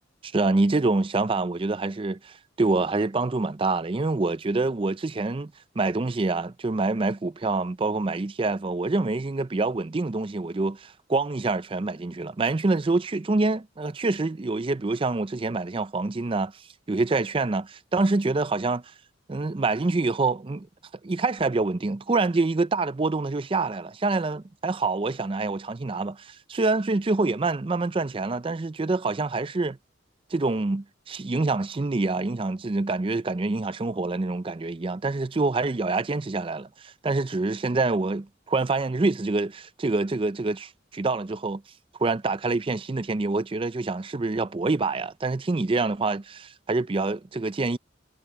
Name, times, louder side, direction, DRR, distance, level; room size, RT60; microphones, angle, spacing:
voice 1, 0.3-5.5 5.8-16.5 16.9-18.8 19.3-20.7 21.0-29.8 30.3-41.6 42.0-47.8, right 3 dB, 30° right, 0.5 m, -26 dB
head